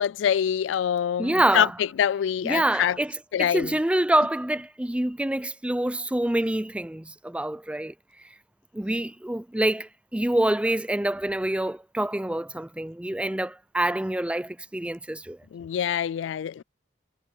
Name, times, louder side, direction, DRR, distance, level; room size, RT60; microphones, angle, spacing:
voice 1, 0.0-3.0 3.3-3.7 15.5-16.6, left 9 dB, 85° left, 0.3 m, -25 dB
voice 2, 1.2-1.8 2.4-7.9 8.7-15.4, right 1 dB, 5° right, 0.4 m, -26 dB
head